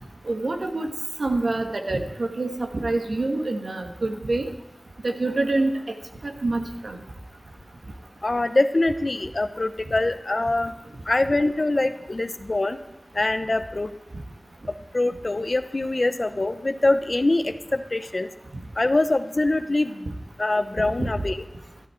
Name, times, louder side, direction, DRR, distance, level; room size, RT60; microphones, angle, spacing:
voice 1, 0.2-0.9 1.2-4.5 5.0-5.8 6.2-7.0 21.0-21.1, right 2 dB, 85° right, 4 dB, 1.5 m, -26 dB
voice 2, 8.2-10.7 11.1-12.8 13.1-13.9 14.9-18.3 18.8-20.1 20.4-21.4, left 2 dB, 50° left, 11 dB, 0.8 m, -24 dB
13.0 x 13.0 x 4.5 m, 0.91 s
wide cardioid pair, 50°, 0 cm